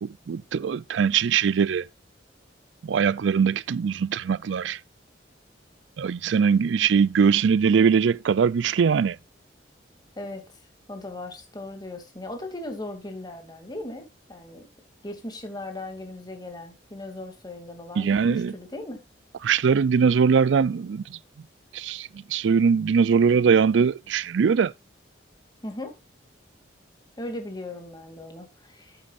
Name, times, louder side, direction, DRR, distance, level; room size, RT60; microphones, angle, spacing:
voice 1, 0.0-1.9 2.8-4.8 6.0-9.2 18.0-18.5 19.4-21.2 21.7-24.7, right 6 dB, 85° right, 0.4 m, -21 dB
voice 2, 10.9-14.7 15.0-19.0 25.6-25.9 27.2-29.0, left 1 dB, 25° left, 2.6 m, -38 dB
13.0 x 8.5 x 2.5 m
head